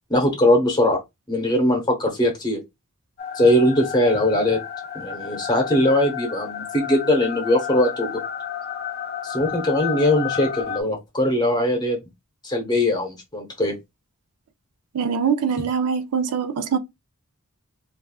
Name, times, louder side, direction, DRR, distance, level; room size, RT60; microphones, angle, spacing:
voice 1, 0.1-1.0 1.3-2.6 3.3-4.6 4.9-8.2 9.2-12.0 12.4-13.7, left 1 dB, 20° left, 1.0 m, -20 dB
sound 1, 3.2-10.8, left 8 dB, 45° left, 0.5 m, -31 dB
voice 2, 14.9-16.8, right 6 dB, 90° right, 0.4 m, -23 dB
3.3 x 2.5 x 2.3 m
head